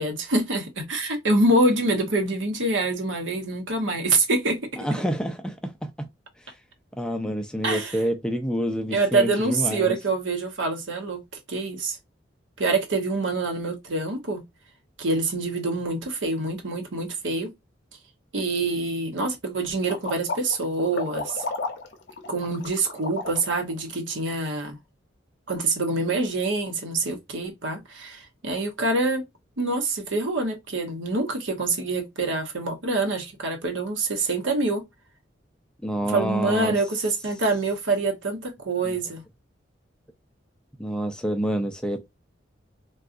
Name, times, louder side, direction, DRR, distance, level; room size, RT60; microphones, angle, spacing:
voice 1, 0.0-4.6 7.6-8.0 8.9-11.2 11.5-12.0 12.6-14.4 15.0-17.5 18.3-21.4 22.3-24.8 25.5-29.2 29.6-34.8 36.1-39.2, right 2 dB, 80° right, 0.9 m, -25 dB
voice 2, 4.8-6.1 7.0-10.0 35.8-36.8 38.8-38.9 40.8-42.1, equal, 5° left, 0.4 m, -28 dB
sound 1, 19.8-23.7, left 3 dB, 65° left, 0.6 m, -33 dB
3.8 x 2.3 x 2.5 m
head